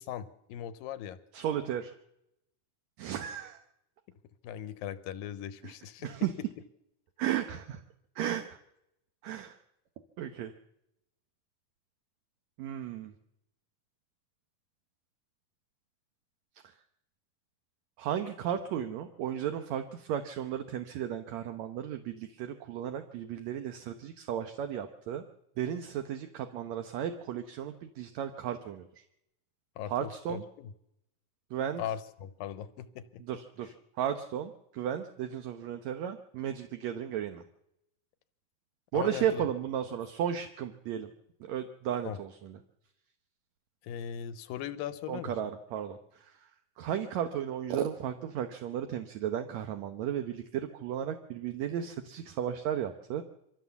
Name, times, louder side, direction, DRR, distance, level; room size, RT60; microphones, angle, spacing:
voice 1, 0.0-1.2 4.4-6.1 29.8-30.7 31.8-33.2 38.9-39.5 42.0-42.2 43.8-45.3, left 9 dB, 90° left, 13 dB, 2.7 m, -39 dB
voice 2, 1.3-1.9 3.0-3.6 5.6-5.7 6.0-6.3 7.2-7.8 8.2-8.6 9.2-9.6 10.2-10.5 12.6-13.1 18.0-25.2 25.6-28.9 29.9-30.4 31.5-31.8 33.3-37.4 38.9-41.1 41.4-42.6 45.1-46.3 46.8-53.2, right 9 dB, 65° right, 6 dB, 1.9 m, -34 dB
24.0 x 15.5 x 7.1 m, 0.81 s
omnidirectional pair, 4.0 m